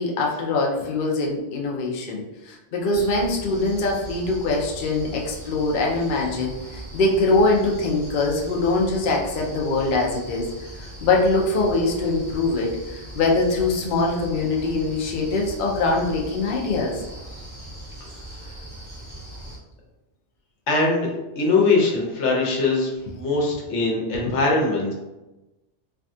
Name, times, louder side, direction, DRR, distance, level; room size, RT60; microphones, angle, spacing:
voice 1, 0.0-10.5 10.7-17.0, left 2 dB, 55° left, -1 dB, 0.6 m, -23 dB
sound 1, 2.9-19.6, right 1 dB, 25° right, 1.0 m, -39 dB
voice 2, 20.7-21.1 21.4-24.9, left 3 dB, 75° left, -2 dB, 1.0 m, -21 dB
3.4 x 2.2 x 2.6 m, 1.0 s
omnidirectional pair, 1.2 m